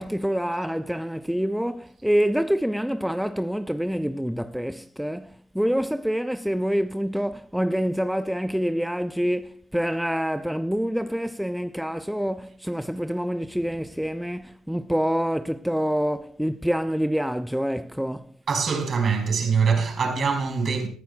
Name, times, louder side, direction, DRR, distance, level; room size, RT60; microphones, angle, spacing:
voice 1, 0.0-18.3, equal, ahead, 0.5 m, -26 dB
voice 2, 18.5-20.9, right 5 dB, 45° right, 4.7 m, -23 dB
19.0 x 14.5 x 2.3 m
figure-of-eight pair, 50°, 0 cm